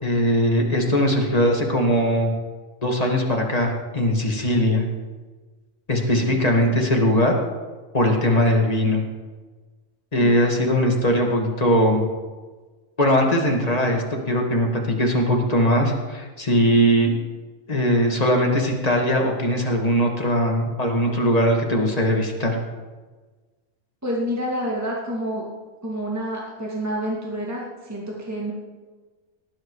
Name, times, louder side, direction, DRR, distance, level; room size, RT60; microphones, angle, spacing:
voice 1, 0.0-2.3 2.8-4.8 5.9-7.3 7.9-9.0 10.1-12.0 13.0-17.1 17.7-22.6, equal, 25° left, 0 dB, 2.1 m, -20 dB
voice 2, 6.3-6.6 10.2-10.4 24.0-25.5 25.8-28.5, equal, 10° right, -3 dB, 2.2 m, -28 dB
18.0 x 10.0 x 4.8 m, 1.4 s
omnidirectional pair, 1.5 m